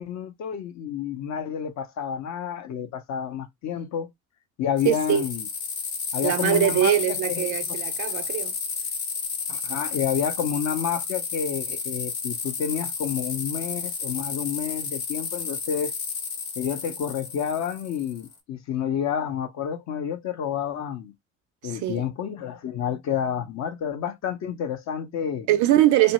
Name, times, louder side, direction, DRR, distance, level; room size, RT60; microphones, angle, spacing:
voice 1, 0.0-4.1 4.6-5.5 6.1-7.8 9.5-16.0 16.6-21.1 21.6-25.5, left 8 dB, 40° left, 0.6 m, -29 dB
sound 1, 4.8-18.3, left 5 dB, 85° left, 0.7 m, -32 dB
voice 2, 4.9-5.2 6.2-8.5 21.6-22.0 25.5-26.1, right 13 dB, 45° right, 0.4 m, -22 dB
2.5 x 2.0 x 2.8 m
figure-of-eight pair, 60°, 43 cm